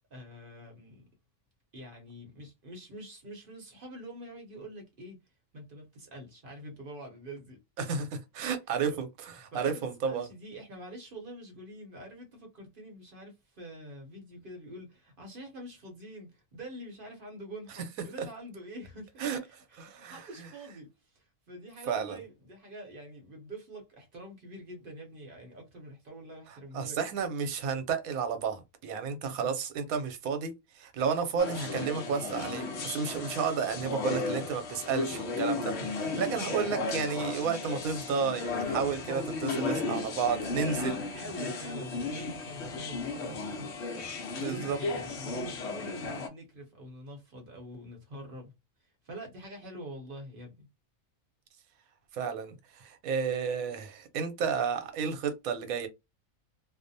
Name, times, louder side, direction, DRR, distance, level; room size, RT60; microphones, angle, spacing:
voice 1, 0.1-1.0 1.7-5.2 5.5-7.6 8.9-9.0 9.5-27.0 29.3-29.5 40.7-43.8 44.4-48.5 48.8-50.7, right 1 dB, 50° right, 0.8 m, -46 dB
voice 2, 7.8-10.3 19.2-19.4 19.7-20.2 21.9-22.2 26.7-41.0 44.3-44.8 52.1-55.9, right 6 dB, 85° right, 1.1 m, -32 dB
sound 1, 31.4-46.3, left 3 dB, 60° left, 0.8 m, -35 dB
2.6 x 2.0 x 2.6 m
omnidirectional pair, 1.4 m